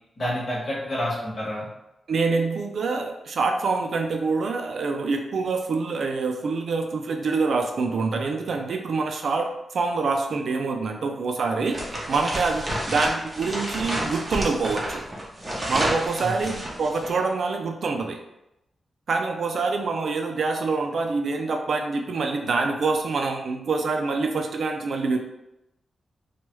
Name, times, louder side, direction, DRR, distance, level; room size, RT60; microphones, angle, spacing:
voice 1, 0.2-1.7 12.9-13.0 16.2-16.6, left 1 dB, 40° left, -6 dB, 1.1 m, -29 dB
voice 2, 2.1-9.5 9.7-11.8 12.1-15.0 15.7-18.2 19.1-25.2, right 4 dB, 60° right, 3 dB, 0.3 m, -26 dB
sound 1, 11.7-17.2, right 1 dB, 20° right, 0.6 m, -30 dB
3.0 x 2.3 x 3.0 m, 0.87 s
wide cardioid pair, 165°, 0 cm